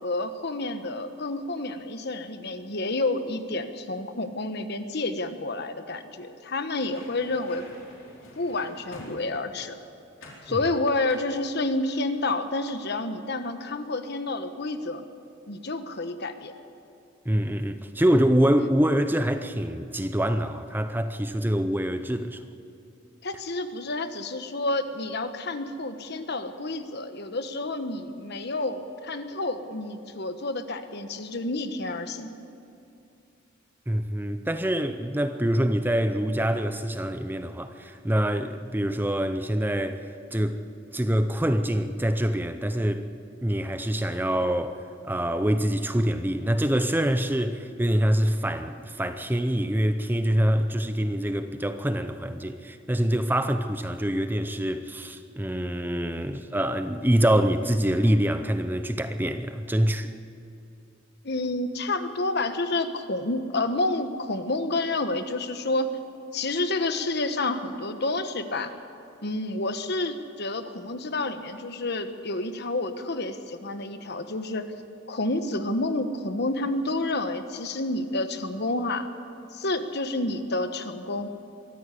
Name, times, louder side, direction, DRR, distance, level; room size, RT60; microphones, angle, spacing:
voice 1, 0.0-7.7 8.4-9.8 10.5-15.0 15.5-16.5 23.2-32.3 61.2-66.0 66.3-68.7 69.2-74.6 75.1-79.1 79.5-81.3, left 2 dB, 55° left, 1.2 m, -29 dB
sound 1, 6.7-9.7 10.2-10.5 11.1-12.3 12.5-12.8, left 1 dB, 75° left, 4.5 m, -48 dB
voice 2, 17.3-22.4 33.9-40.0 40.3-40.6 40.9-43.1 43.4-60.1, equal, 10° right, 0.7 m, -25 dB
23.0 x 14.5 x 8.4 m
head